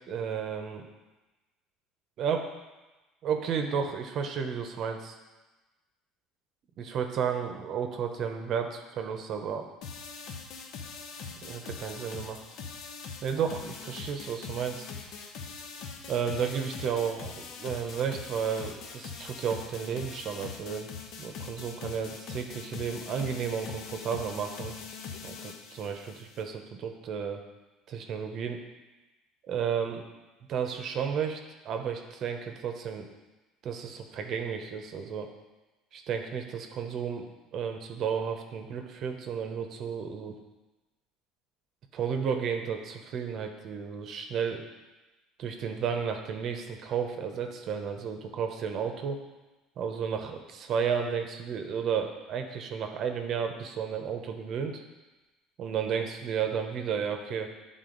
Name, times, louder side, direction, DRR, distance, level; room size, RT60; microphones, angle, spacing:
voice 1, 0.1-0.8 2.2-2.5 3.2-5.2 6.8-9.7 11.4-12.4 13.2-14.9 16.1-20.9 21.2-24.7 25.2-27.4 27.9-28.6 29.5-30.0 30.5-31.4 31.6-33.1 33.6-35.3 35.9-37.3 37.5-40.4 41.9-44.6 45.4-49.2 49.8-54.8 55.6-57.5, right 7 dB, 45° right, 5 dB, 0.8 m, -32 dB
sound 1, 9.8-26.4, left 5 dB, 60° left, 0.8 m, -42 dB
10.5 x 3.9 x 3.9 m, 1.1 s
cardioid pair, 135°, 0 cm